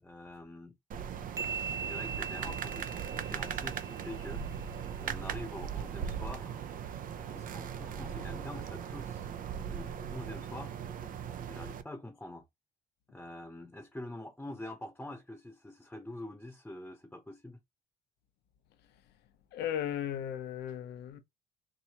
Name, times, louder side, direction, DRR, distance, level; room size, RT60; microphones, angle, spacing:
voice 1, 0.0-0.8 1.6-4.4 5.0-6.6 7.1-9.3 9.5-10.8 11.5-12.5 13.1-17.6, left 1 dB, 5° left, 0.9 m, -45 dB
sound 1, 0.9-11.8, right 8 dB, 55° right, 0.7 m, -39 dB
sound 2, 1.4-4.9, right 5 dB, 20° right, 0.4 m, -41 dB
voice 2, 19.5-21.2, left 10 dB, 80° left, 0.8 m, -36 dB
4.8 x 2.7 x 2.9 m
cardioid pair, 110°, 17 cm